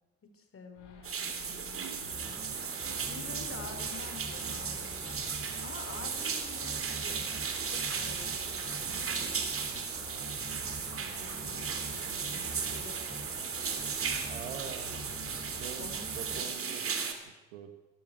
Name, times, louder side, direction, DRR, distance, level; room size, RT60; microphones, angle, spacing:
voice 1, 0.2-2.4 3.1-5.3 5.6-9.4 11.0-13.3 15.8-16.1 16.4-16.5, left 4 dB, 40° left, 6 dB, 5.1 m, -49 dB
sound 1, 0.7-16.1, left 5 dB, 80° left, 5.5 m, -54 dB
sound 2, 1.0-17.1, right 6 dB, 40° right, 3.5 m, -36 dB
sound 3, 2.1-16.4, right 1 dB, 10° right, 6.4 m, -46 dB
voice 2, 14.3-15.0 15.5-17.7, right 9 dB, 80° right, 8 dB, 1.8 m, -45 dB
24.5 x 14.0 x 8.0 m, 1.1 s
hypercardioid pair, 60°, 35 cm